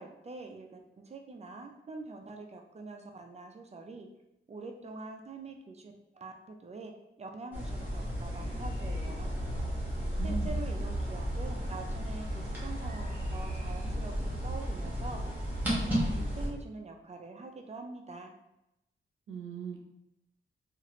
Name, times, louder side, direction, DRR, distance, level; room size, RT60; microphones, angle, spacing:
voice 1, 0.0-4.1 4.5-9.3 10.2-14.1 14.4-15.3 15.7-18.3, right 3 dB, 30° right, 4 dB, 0.4 m, -45 dB
sound 1, 7.5-16.5, equal, 10° right, 1.2 m, -33 dB
voice 2, 10.0-10.6 19.3-19.8, right 4 dB, 80° right, 2 dB, 0.6 m, -39 dB
2.9 x 2.4 x 2.9 m, 0.88 s
wide cardioid pair, 120°, 21 cm